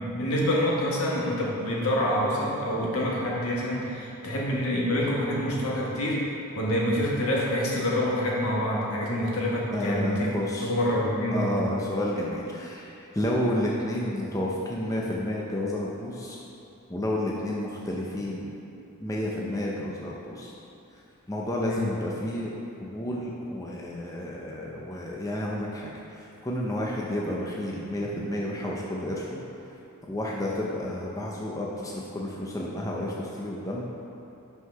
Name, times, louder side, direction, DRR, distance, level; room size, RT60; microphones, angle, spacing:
voice 1, 0.0-6.2 6.5-10.3 10.6-11.6 21.6-21.8, equal, 75° left, -4 dB, 1.5 m, -26 dB
voice 2, 9.7-10.7 11.3-16.4 16.9-18.5 19.0-20.5 21.3-22.5 22.8-29.4 30.1-33.8, left 1 dB, 15° left, -3 dB, 0.6 m, -31 dB
5.7 x 5.7 x 5.6 m, 2.8 s
head